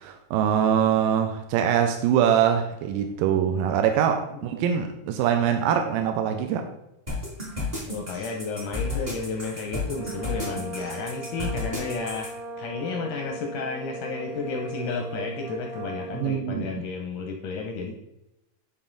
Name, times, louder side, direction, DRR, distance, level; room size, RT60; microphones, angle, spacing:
voice 1, 0.0-6.7 16.1-16.7, right 9 dB, 80° right, 2.0 m, -23 dB
sound 1, 7.1-12.3, left 3 dB, 35° right, 0.6 m, -32 dB
voice 2, 7.8-12.3 12.6-17.9, left 4 dB, 80° left, 1.8 m, -32 dB
sound 2, 9.8-16.4, right 1 dB, 60° right, 2.0 m, -38 dB
10.5 x 3.8 x 3.8 m
omnidirectional pair, 4.4 m